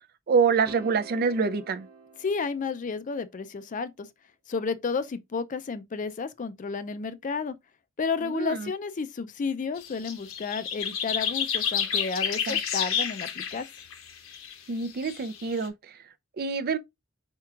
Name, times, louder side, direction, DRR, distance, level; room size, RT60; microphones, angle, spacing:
voice 1, 0.3-1.9 8.2-8.7 12.5-12.6 14.7-15.7 16.4-16.8, right 5 dB, 45° right, 0.4 m, -26 dB
sound 1, 0.7-3.1, right 4 dB, 25° right, 1.1 m, -46 dB
voice 2, 2.2-4.1 4.5-7.6 8.0-13.7, left 5 dB, 40° left, 0.4 m, -31 dB
sound 2, 9.8-14.5 14.8-15.7, left 8 dB, 75° left, 0.9 m, -30 dB
4.5 x 4.5 x 2.4 m
head